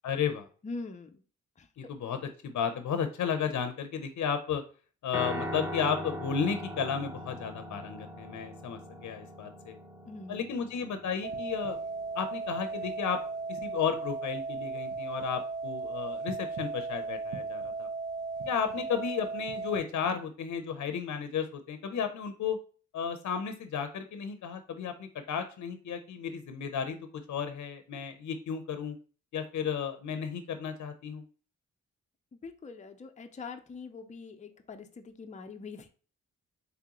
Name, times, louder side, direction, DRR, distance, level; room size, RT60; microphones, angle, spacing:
voice 1, 0.0-0.5 1.8-4.6 5.0-9.7 10.3-11.8 12.2-13.2 13.5-17.9 18.5-22.6 22.9-27.0 27.3-29.0 29.3-31.2, left 7 dB, 65° left, 8 dB, 0.6 m, -33 dB
voice 2, 0.6-1.2 1.6-1.9 10.1-10.4 32.3-35.9, left 4 dB, 25° left, 6 dB, 0.5 m, -43 dB
Piano, 5.1-13.4, equal, 10° right, 0.9 m, -41 dB
sound 1, 11.2-19.8, right 4 dB, 85° right, 0.8 m, -36 dB
3.7 x 3.4 x 2.9 m, 0.39 s
cardioid pair, 65°, 31 cm